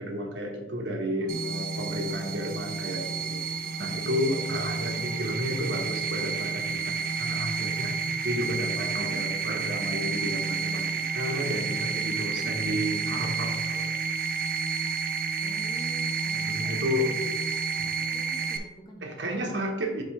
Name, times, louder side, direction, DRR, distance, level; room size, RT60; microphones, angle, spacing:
voice 1, 0.0-3.4 3.8-8.0 8.2-13.9 16.3-17.1 19.0-20.0, equal, 80° right, 1 dB, 1.3 m, -32 dB
voice 2, 1.1-1.5 3.6-4.0 4.8-5.4 9.0-9.3 12.2-12.5 15.4-17.3 17.8-19.0, right 1 dB, 25° left, -1 dB, 1.3 m, -46 dB
sound 1, 1.3-18.6, right 5 dB, 50° right, 0.6 m, -30 dB
6.2 x 5.9 x 3.3 m, 1.1 s
head